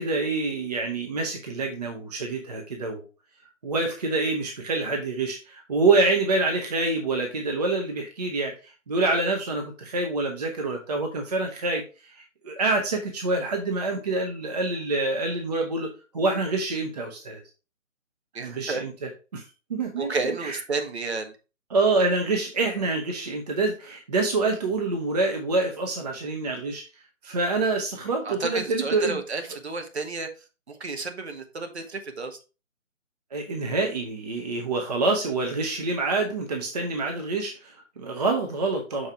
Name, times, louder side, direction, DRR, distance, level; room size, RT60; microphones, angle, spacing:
voice 1, 0.0-3.0 3.6-11.8 12.2-15.9 16.1-17.4 18.4-20.6 21.7-26.8 27.2-29.2 33.3-39.1, right 3 dB, 30° right, 3 dB, 0.8 m, -26 dB
voice 2, 18.3-18.8 20.0-21.3 28.2-30.3 30.7-32.4, right 3 dB, 55° right, 6 dB, 1.2 m, -31 dB
6.4 x 4.6 x 3.4 m, 0.32 s
figure-of-eight pair, 150°, 40 cm